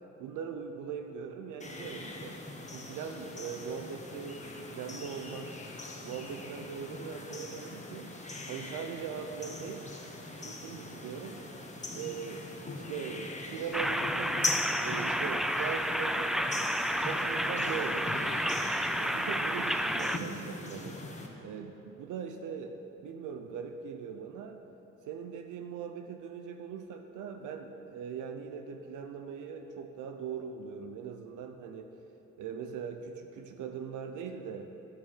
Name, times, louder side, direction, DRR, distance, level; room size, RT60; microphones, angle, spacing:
voice 1, 0.2-2.4 2.7-5.6 6.0-8.1 8.5-9.9 10.4-11.4 11.9-12.4 12.7-14.4 14.8-16.5 17.0-18.1 19.0-21.0 21.4-24.6 25.1-31.9 32.4-34.7, right 6 dB, 80° right, 5 dB, 0.8 m, -40 dB
sound 1, 1.6-21.3, left 2 dB, 25° left, 1.5 m, -41 dB
sound 2, 13.7-20.2, equal, ahead, 0.4 m, -31 dB
10.5 x 7.8 x 6.6 m, 3.0 s
cardioid pair, 90°, 30 cm